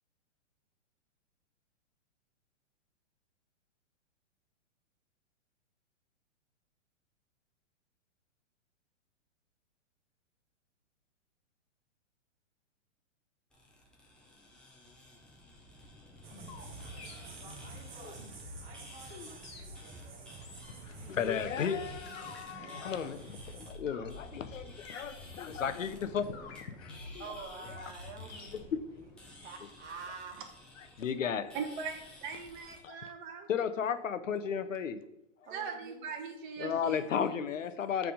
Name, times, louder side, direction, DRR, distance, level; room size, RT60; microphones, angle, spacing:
sound 1, 13.5-32.8, left 1 dB, 5° left, 0.4 m, -54 dB
sound 2, 15.8-28.7, left 3 dB, 55° left, 1.3 m, -49 dB
sound 3, 16.2-23.7, right 4 dB, 25° right, 0.9 m, -49 dB
voice 1, 20.7-26.3 26.7-27.1 27.8-27.9 28.5-28.6 31.0-31.5 32.8-33.0 33.5-35.0 36.6-38.1, left 7 dB, 90° left, 11 dB, 0.6 m, -34 dB
voice 2, 27.2-30.4 35.4-36.1, right 4 dB, 65° right, 3 dB, 1.4 m, -47 dB
voice 3, 31.5-33.5 35.5-37.0, right 6 dB, 40° right, 3 dB, 1.2 m, -40 dB
6.1 x 3.4 x 5.0 m, 0.84 s
hypercardioid pair, 125°, 37 cm